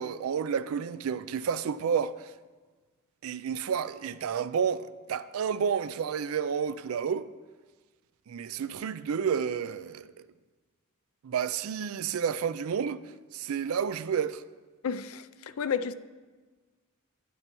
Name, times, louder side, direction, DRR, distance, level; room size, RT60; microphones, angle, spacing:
voice 1, 0.0-2.3 3.2-7.3 8.3-10.1 11.2-13.0 13.3-14.4, right 7 dB, 85° right, 0.4 m, -30 dB
voice 2, 14.8-15.2 15.6-15.9, left 6 dB, 85° left, 0.4 m, -30 dB
12.5 x 11.0 x 3.0 m
head